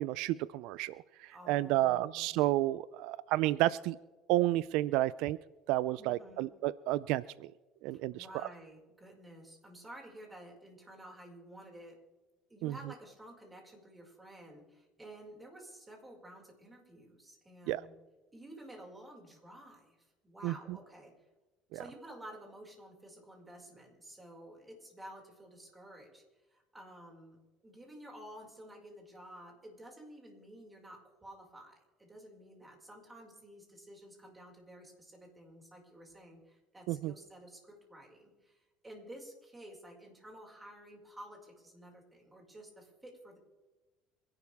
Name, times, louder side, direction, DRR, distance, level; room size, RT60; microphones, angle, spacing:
voice 1, 0.0-4.0 4.3-5.4 5.7-7.5 7.8-8.3 12.6-12.7 17.7-17.8 20.4-20.8 21.7-21.8 36.9-37.1, right 16 dB, 75° right, 18 dB, 0.4 m, -31 dB
voice 2, 1.3-2.4 6.0-6.5 7.9-12.0 12.5-17.9 18.3-21.1 21.7-26.2 26.5-43.4, right 1 dB, 15° right, 0 dB, 5.4 m, -52 dB
27.0 x 12.0 x 3.5 m, 1.2 s
supercardioid pair, 115°, 0 cm